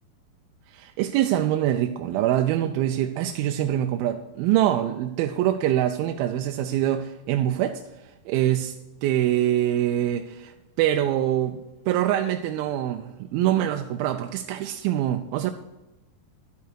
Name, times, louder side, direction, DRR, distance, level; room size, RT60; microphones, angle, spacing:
voice 1, 0.7-7.8 8.3-8.7 9.0-11.6 11.9-15.5, right 12 dB, 90° right, 6 dB, 2.4 m, -24 dB
11.5 x 8.4 x 4.6 m, 1.0 s
omnidirectional pair, 4.2 m